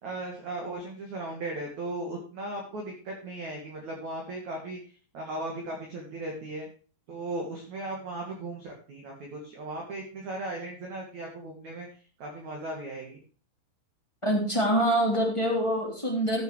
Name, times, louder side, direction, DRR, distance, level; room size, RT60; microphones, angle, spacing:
voice 1, 0.0-4.8 5.1-6.7 7.1-13.2, right 2 dB, 45° right, 1 dB, 2.9 m, -37 dB
voice 2, 14.2-16.4, right 1 dB, 10° left, 0 dB, 2.4 m, -25 dB
16.0 x 8.1 x 3.2 m, 0.39 s
omnidirectional pair, 5.9 m